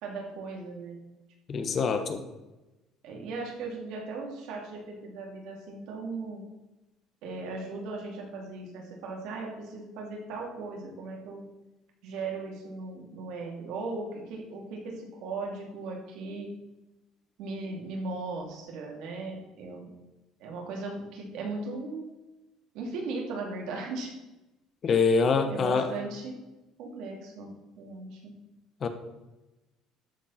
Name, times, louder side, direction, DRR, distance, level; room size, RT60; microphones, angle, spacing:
voice 1, 0.0-1.0 1.5-1.9 3.0-6.4 7.2-11.4 12.0-16.5 17.4-19.9 20.4-22.1 22.7-24.1 25.5-26.4 26.8-27.5 27.8-28.3, right 3 dB, 75° right, 1 dB, 2.5 m, -37 dB
voice 2, 1.5-2.2 24.8-25.9 28.8-28.9, left 5 dB, 40° left, 8 dB, 1.1 m, -25 dB
13.0 x 4.6 x 5.6 m, 1.0 s
cardioid pair, 125°, 0 cm